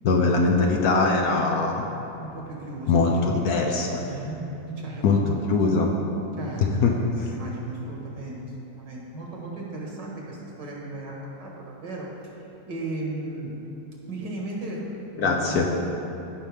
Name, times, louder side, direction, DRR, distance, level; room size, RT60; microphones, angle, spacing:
voice 1, 0.0-1.8 2.9-3.9 5.0-5.9 6.6-7.0 15.2-15.7, left 4 dB, 65° left, 1 dB, 1.0 m, -21 dB
voice 2, 2.2-5.0 6.3-12.1 12.6-13.5 14.1-15.7, right 2 dB, 70° right, -3 dB, 2.1 m, -36 dB
15.5 x 5.7 x 3.5 m, 2.9 s
omnidirectional pair, 2.0 m